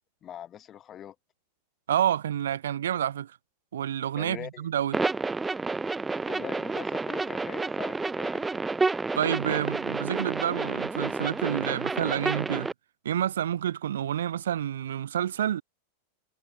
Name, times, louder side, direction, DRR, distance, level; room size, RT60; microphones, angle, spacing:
voice 1, 0.2-1.2 4.2-4.7 6.2-8.7, left 10 dB, 30° left, 7.2 m, -42 dB
voice 2, 1.9-3.3 3.7-5.0 9.2-12.7 13.0-15.6, right 10 dB, 60° right, 0.4 m, -29 dB
sound 1, 4.9-12.7, right 3 dB, 10° right, 1.2 m, -30 dB
figure-of-eight pair, 90°, 0 cm